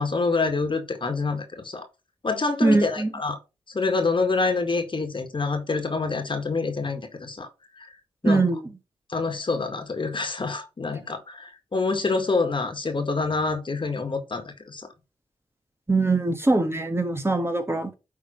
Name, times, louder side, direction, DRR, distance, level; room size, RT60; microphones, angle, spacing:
voice 1, 0.0-1.9 2.2-3.4 3.7-7.5 7.8-7.9 8.2-8.4 9.1-14.9, left 3 dB, 45° left, 1.9 m, -26 dB
voice 2, 2.6-3.1 8.2-8.7 15.9-17.9, right 2 dB, 20° right, 1.5 m, -22 dB
10.0 x 3.5 x 4.4 m
supercardioid pair, 45°, 12 cm